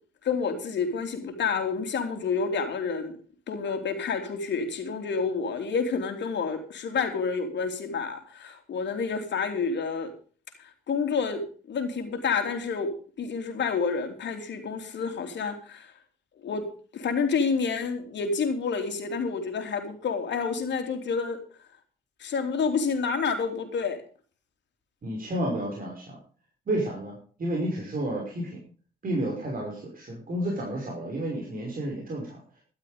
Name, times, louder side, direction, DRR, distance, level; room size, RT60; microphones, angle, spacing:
voice 1, 0.2-3.2 3.5-10.1 10.6-15.9 16.4-16.7 16.9-21.4 22.2-24.0, left 5 dB, 60° left, 6 dB, 3.3 m, -29 dB
voice 2, 25.0-26.2 26.7-28.6 29.0-32.4, right 1 dB, 45° right, -1 dB, 5.6 m, -31 dB
13.0 x 12.0 x 5.1 m, 0.40 s
supercardioid pair, 60°, 21 cm